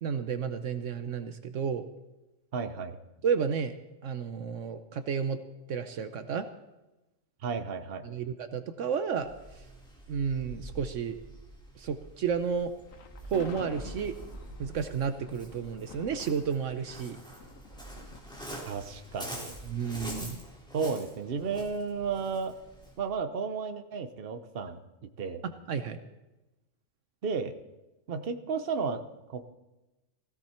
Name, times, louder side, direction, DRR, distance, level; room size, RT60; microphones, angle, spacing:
voice 1, 0.0-1.8 3.2-3.7 4.0-5.4 5.7-6.5 8.0-9.3 10.1-11.2 11.8-12.7 13.3-14.1 14.6-17.2 19.7-20.4 25.7-26.0, right 6 dB, 70° right, 10 dB, 1.1 m, -31 dB
voice 2, 2.5-3.0 7.4-8.0 18.7-19.6 20.7-22.5 23.0-24.8 25.2-25.4 27.2-27.5 28.1-29.0 29.3-29.5, right 5 dB, 50° right, 9 dB, 1.1 m, -33 dB
Waves surf, 9.2-23.1, right 1 dB, 5° left, 3.6 m, -46 dB
Thunder, 12.9-20.1, left 5 dB, 75° left, 1.4 m, -50 dB
17.0 x 16.0 x 4.4 m, 1.0 s
omnidirectional pair, 1.4 m